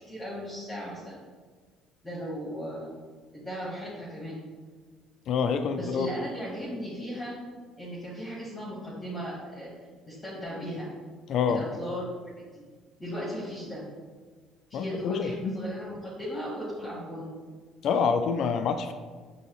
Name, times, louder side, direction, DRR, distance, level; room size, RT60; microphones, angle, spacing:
voice 1, 0.1-1.2 2.0-2.9 3.3-4.4 5.8-7.4 7.8-9.7 10.1-10.9 11.5-12.6 13.0-13.9 14.7-17.3, equal, 20° left, -8 dB, 1.4 m, -36 dB
voice 2, 5.3-6.1 11.3-11.6 14.7-15.5 17.8-18.9, left 6 dB, 60° left, 8 dB, 0.3 m, -27 dB
5.4 x 2.8 x 3.1 m, 1.5 s
supercardioid pair, 90°, 0 cm